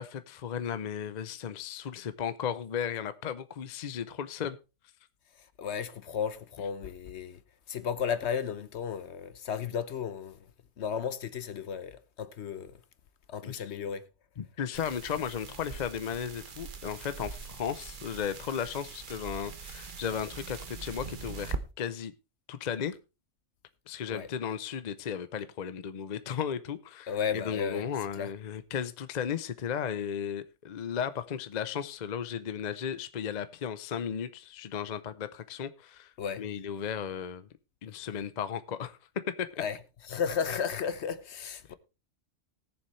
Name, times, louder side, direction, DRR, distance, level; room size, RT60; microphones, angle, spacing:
voice 1, 0.0-4.6 13.4-13.6 14.4-22.1 22.5-23.0 23.9-37.5 37.8-39.0 39.3-39.6, left 8 dB, 45° left, 0.7 m, -35 dB
voice 2, 5.6-7.4 7.7-10.4 10.8-12.8 13.3-14.1 24.1-24.3 27.1-27.9 28.2-28.3 36.2-36.4 39.6-39.8 40.1-41.7, left 7 dB, 65° left, 1.1 m, -34 dB
sound 1, 14.7-21.6, right 5 dB, 45° right, 1.1 m, -42 dB
19.5 x 7.1 x 3.2 m
omnidirectional pair, 1.3 m